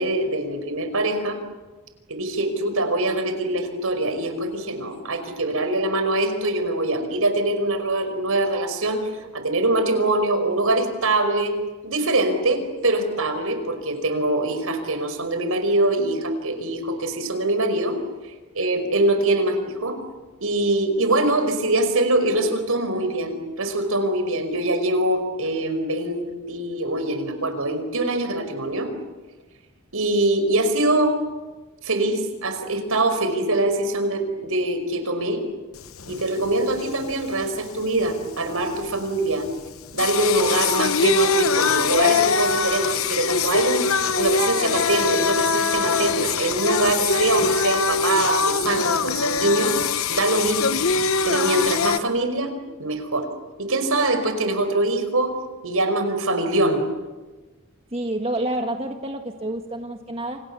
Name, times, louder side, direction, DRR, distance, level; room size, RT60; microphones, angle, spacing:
voice 1, 0.0-1.4 2.1-11.5 11.8-18.0 18.5-20.0 20.4-28.9 29.9-31.2 31.8-35.4 36.1-39.5 39.9-43.9 44.1-49.8 50.1-50.9 51.2-52.5 52.8-53.3 53.6-55.3 55.6-56.8, right 2 dB, 75° right, 8 dB, 5.2 m, -23 dB
Singing, 35.8-52.0, left 5 dB, 70° left, 1.0 m, -23 dB
voice 2, 57.9-60.4, right 1 dB, 25° right, 3 dB, 1.7 m, -28 dB
29.5 x 28.0 x 7.0 m, 1.2 s
head